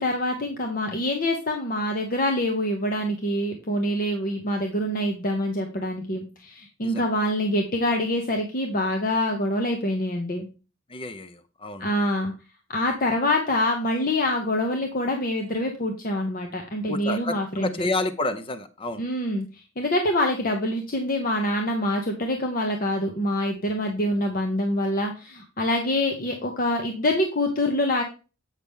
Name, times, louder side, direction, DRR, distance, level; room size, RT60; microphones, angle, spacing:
voice 1, 0.0-10.5 11.8-12.3 12.7-17.9 19.0-28.0, left 1 dB, 45° left, 3 dB, 1.0 m, -25 dB
voice 2, 10.9-11.9 16.9-19.0, left 2 dB, 25° left, 10 dB, 0.6 m, -30 dB
8.2 x 5.8 x 3.6 m, 0.33 s
head